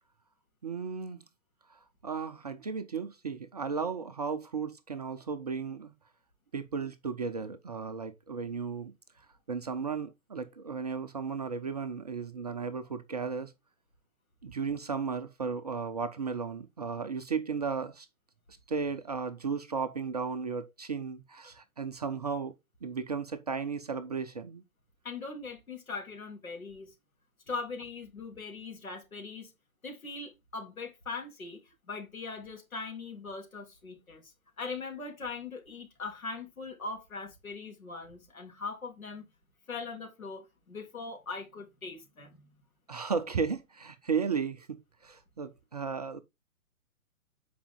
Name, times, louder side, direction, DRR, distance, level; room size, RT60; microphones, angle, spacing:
voice 1, 0.6-1.2 1.7-5.9 6.5-8.9 9.5-13.5 14.4-18.1 18.7-22.5 22.8-24.6 42.9-44.8 45.0-46.2, right 5 dB, 30° right, 0.5 m, -35 dB
voice 2, 25.0-26.9 27.5-29.5 29.8-39.2 39.7-42.6, left 4 dB, 70° left, 3.3 m, -41 dB
8.4 x 5.1 x 3.7 m
figure-of-eight pair, 125°, 44 cm